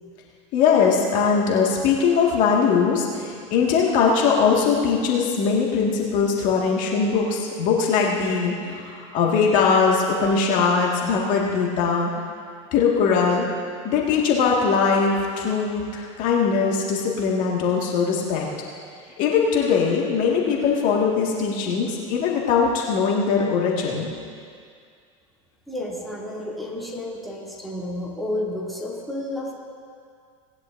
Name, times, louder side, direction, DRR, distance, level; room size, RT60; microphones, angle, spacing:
voice 1, 0.5-12.1 12.7-13.5 13.8-18.5 19.2-24.1, left 5 dB, 55° left, -2 dB, 1.9 m, -21 dB
voice 2, 25.7-29.5, left 1 dB, ahead, -5 dB, 2.6 m, -31 dB
19.5 x 10.5 x 2.6 m, 2.2 s
hypercardioid pair, 105°, 16 cm